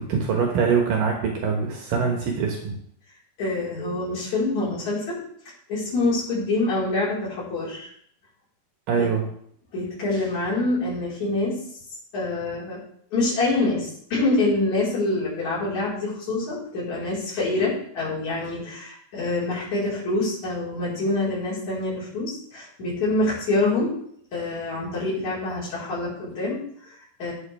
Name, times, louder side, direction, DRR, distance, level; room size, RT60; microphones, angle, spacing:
voice 1, 0.0-2.8 8.9-9.2, right 6 dB, 70° right, 1 dB, 2.9 m, -23 dB
voice 2, 3.4-5.2 5.7-7.9 9.0-9.1 9.7-11.6 12.1-12.8 13.1-24.0 24.3-27.3, left 2 dB, 50° left, -8 dB, 5.8 m, -26 dB
12.5 x 9.1 x 3.5 m, 0.65 s
omnidirectional pair, 4.3 m